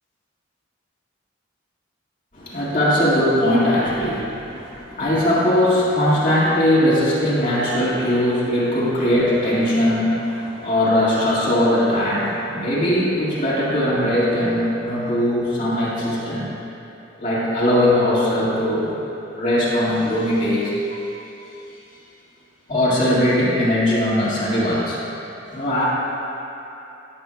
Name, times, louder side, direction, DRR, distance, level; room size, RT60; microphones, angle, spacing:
voice 1, 2.3-16.6 17.2-19.0 19.3-21.0 22.7-25.0 25.5-25.9, left 1 dB, 45° left, -9 dB, 2.0 m, -20 dB
14.5 x 8.0 x 2.3 m, 2.9 s
head